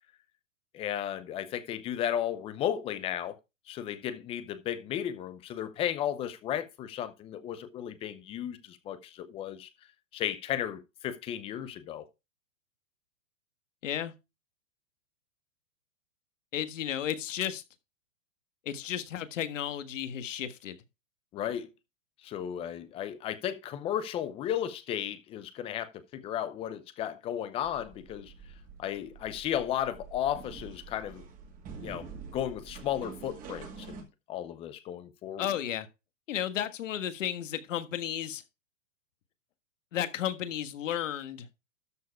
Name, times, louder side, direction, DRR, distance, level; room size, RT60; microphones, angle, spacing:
voice 1, 0.7-3.4 3.7-9.7 10.1-12.1 21.3-21.7 22.2-28.3 28.8-31.2 31.8-32.1 32.3-35.5, left 10 dB, 15° left, 0.6 m, -34 dB
voice 2, 13.8-14.1 16.5-17.6 18.7-20.8 35.4-35.9 36.3-38.4 39.9-41.5, left 10 dB, 70° left, 1.6 m, -33 dB
sound 1, 27.6-34.0, right 5 dB, 20° right, 2.1 m, -46 dB
13.0 x 4.7 x 4.6 m
hypercardioid pair, 155°, 38 cm